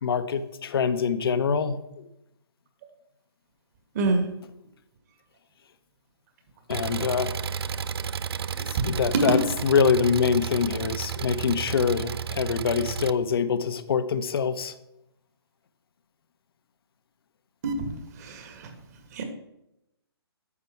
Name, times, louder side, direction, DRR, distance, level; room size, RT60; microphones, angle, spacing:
voice 1, 0.0-2.1 6.7-7.4 8.7-14.7, left 6 dB, 60° left, 12 dB, 0.9 m, -25 dB
voice 2, 3.9-4.3 8.5-8.6 9.1-9.2 17.6-18.7 19.1-19.2, right 3 dB, 40° right, 6 dB, 1.9 m, -27 dB
Engine, 6.7-13.1, right 7 dB, 65° right, 0.5 m, -32 dB
9.7 x 6.9 x 4.5 m, 0.85 s
hypercardioid pair, 145°, 14 cm